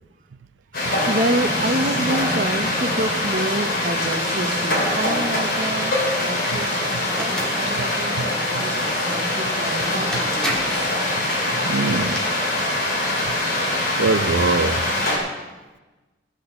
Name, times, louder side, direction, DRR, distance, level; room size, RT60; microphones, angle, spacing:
sound 1, 0.7-15.2, left 1 dB, 50° left, 3.2 m, -23 dB
voice 1, 0.7-10.9, right 1 dB, 45° right, 0.8 m, -28 dB
sound 2, 7.1-7.6 9.6-9.7 10.1-10.9 11.8-12.2, equal, 5° left, 1.6 m, -29 dB
voice 2, 11.5-12.3 13.2-13.3 14.0-14.8, right 4 dB, 80° right, 0.5 m, -23 dB
16.5 x 6.4 x 6.9 m
head